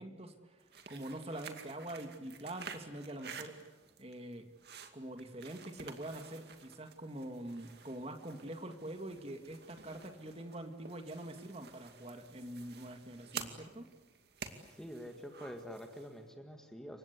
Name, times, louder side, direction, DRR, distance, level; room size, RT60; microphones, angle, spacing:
voice 1, 0.0-3.6 4.0-4.5 4.9-13.9, right 1 dB, 30° right, 6 dB, 2.1 m, -45 dB
sound 1, 0.6-16.2, right 6 dB, 55° right, 2.4 m, -51 dB
voice 2, 14.8-17.0, equal, 5° left, 5 dB, 1.9 m, -46 dB
29.0 x 24.5 x 8.3 m, 1.2 s
head